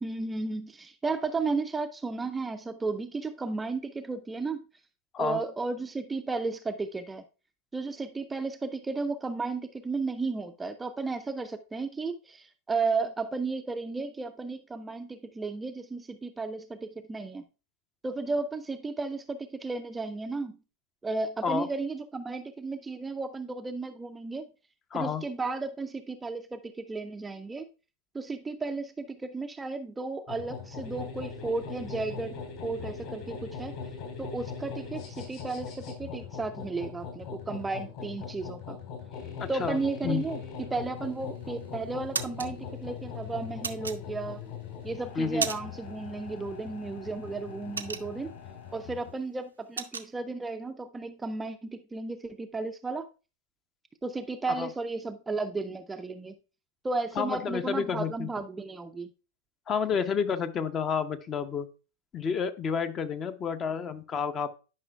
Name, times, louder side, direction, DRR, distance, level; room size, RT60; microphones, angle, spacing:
voice 1, 0.0-4.6 5.2-7.2 7.7-17.4 18.0-20.6 21.0-24.5 24.9-27.7 28.1-33.7 34.2-38.8 39.5-44.4 44.8-48.3 48.7-53.1 54.0-56.4 56.8-59.1, right 3 dB, 10° right, 8 dB, 0.4 m, -34 dB
voice 2, 24.9-25.2 39.4-39.8 40.0-40.3 45.2-45.5 54.6-54.7 57.2-58.3 59.7-61.7 62.1-64.6, left 6 dB, 25° left, 11 dB, 0.6 m, -30 dB
sound 1, 30.3-49.1, left 6 dB, 50° left, 3.7 m, -41 dB
sound 2, 41.1-41.5 41.9-42.5 43.6-44.5 44.9-45.9 46.2-46.4 46.8-48.5 48.9-49.0 49.3-50.1, right 5 dB, 75° right, 0.5 m, -34 dB
10.5 x 5.5 x 2.3 m, 0.33 s
figure-of-eight pair, 90°, 0 cm